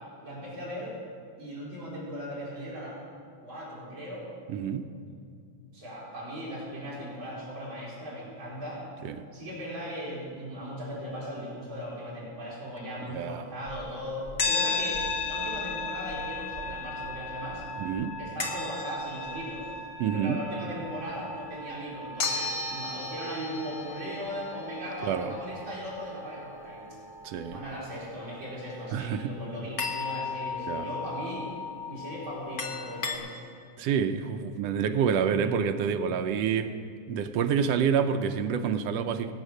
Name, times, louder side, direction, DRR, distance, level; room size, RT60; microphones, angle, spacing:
voice 1, 0.2-1.0 1.4-3.0 3.4-4.3 5.7-8.8 9.3-17.7 18.2-19.7 20.1-27.0 27.5-31.5 31.8-33.4, equal, 40° right, -7 dB, 5.2 m, -38 dB
voice 2, 4.5-4.9 9.0-9.2 13.1-13.5 17.8-18.2 20.0-20.4 25.0-25.3 27.2-27.6 28.9-29.3 30.7-30.9 33.8-36.7 37.1-39.3, right 7 dB, 85° right, 7 dB, 1.4 m, -28 dB
sound 1, 13.7-33.2, left 3 dB, 50° left, 1.4 m, -36 dB
20.5 x 8.3 x 6.3 m, 2.3 s
omnidirectional pair, 3.5 m